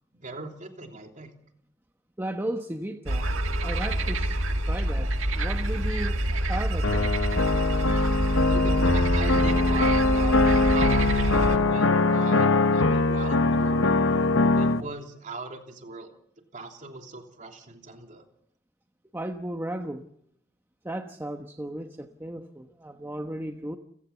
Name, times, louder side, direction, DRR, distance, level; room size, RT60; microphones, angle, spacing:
voice 1, 0.2-1.3 8.5-16.1 16.5-18.2, right 3 dB, 40° right, 3 dB, 3.2 m, -39 dB
voice 2, 2.2-3.3 3.6-7.2 19.1-20.1 20.8-23.8, right 1 dB, 10° right, 4 dB, 1.1 m, -35 dB
sound 1, 3.1-11.6, right 1 dB, 80° right, 1.8 m, -26 dB
sound 2, 6.8-14.8, left 3 dB, 70° left, 1.0 m, -22 dB
30.0 x 16.5 x 7.1 m, 0.71 s
head